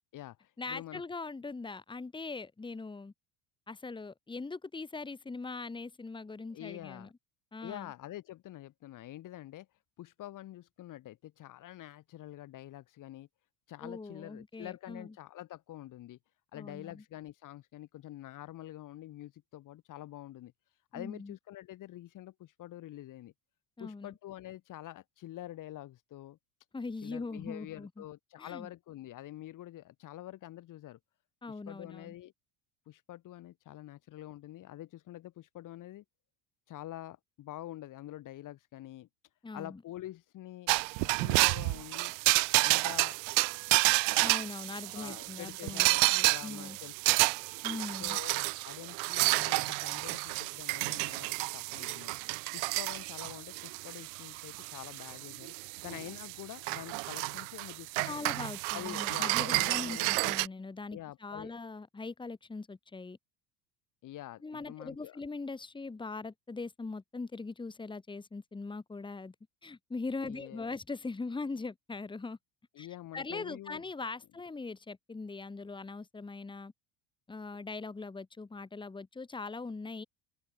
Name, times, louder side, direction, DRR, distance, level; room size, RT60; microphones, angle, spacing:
voice 1, 0.0-1.0 6.5-7.1 7.6-9.7 10.0-13.3 13.7-16.2 16.5-20.5 20.9-23.3 23.8-26.4 27.0-31.0 31.7-32.3 32.9-36.0 36.7-39.1 39.5-40.7 41.0-42.1 42.5-43.2 44.9-47.2 48.0-52.1 52.5-55.5 55.8-58.2 58.7-60.1 60.9-61.5 64.0-65.2 70.2-70.7 72.7-73.8, left 14 dB, 45° left, 2.3 m, -46 dB
voice 2, 0.6-3.1 3.7-7.1 7.5-7.9 13.8-15.1 16.5-17.0 20.9-21.3 23.8-24.1 26.7-28.0 28.4-28.7 31.4-32.1 39.4-39.8 44.2-45.9 46.1-46.8 47.6-48.2 58.1-63.2 64.4-69.3 69.6-72.4 72.8-72.9 73.1-76.7 77.3-80.0, left 3 dB, 10° left, 2.4 m, -41 dB
sound 1, 40.7-60.5, right 40 dB or more, 85° right, 1.5 m, -30 dB
open air
cardioid pair, 145°, 42 cm